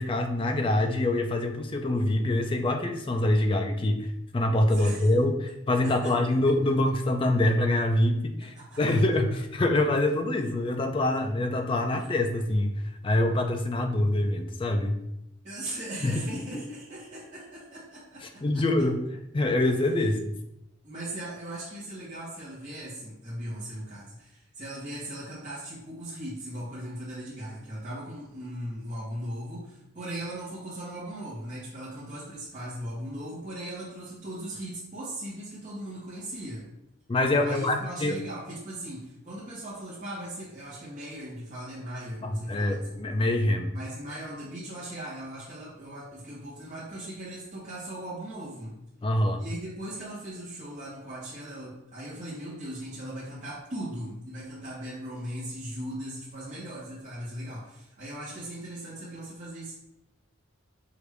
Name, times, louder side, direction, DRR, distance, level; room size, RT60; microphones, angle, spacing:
voice 1, 0.0-4.1 4.3-12.7 13.0-15.0 16.0-16.4 18.4-20.4 37.1-38.2 42.2-43.7 49.0-49.4, left 1 dB, 25° left, 6 dB, 0.3 m, -25 dB
voice 2, 4.7-5.1 5.8-6.7 8.4-9.0 15.4-18.6 20.8-36.7 37.4-43.1 43.7-48.8 49.4-59.8, right 1 dB, 35° right, -9 dB, 1.0 m, -39 dB
4.8 x 2.5 x 3.3 m, 0.83 s
head